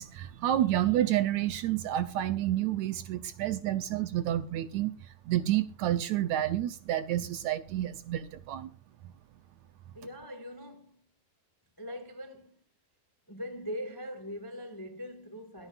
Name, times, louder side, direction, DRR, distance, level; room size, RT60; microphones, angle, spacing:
voice 1, 0.0-8.7, right 12 dB, 75° right, 1.8 m, -29 dB
voice 2, 9.9-11.0 11.8-12.6 13.3-15.7, equal, 35° left, 0.3 m, -41 dB
22.5 x 9.8 x 2.4 m
omnidirectional pair, 3.8 m